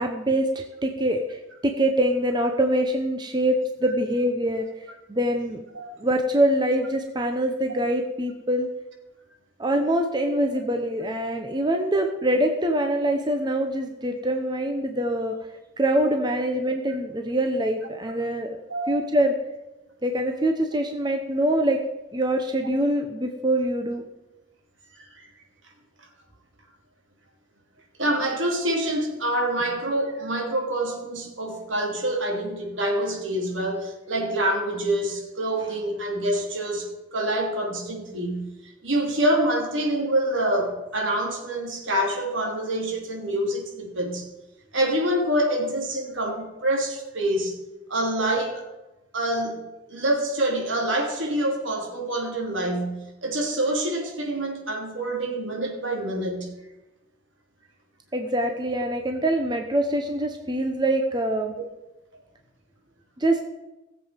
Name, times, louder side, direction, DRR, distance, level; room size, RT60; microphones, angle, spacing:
voice 1, 0.0-4.7 5.1-5.6 6.0-8.7 9.6-15.4 15.8-18.6 18.9-19.3 20.0-21.8 22.1-24.0 58.1-61.5 63.2-63.4, right 1 dB, 20° right, 4 dB, 0.9 m, -24 dB
voice 2, 25.0-25.3 28.0-44.3 44.7-47.6 47.9-48.6 49.1-49.6 49.9-56.5, right 1 dB, 75° right, 1 dB, 2.9 m, -26 dB
18.0 x 7.6 x 5.2 m, 1.0 s
head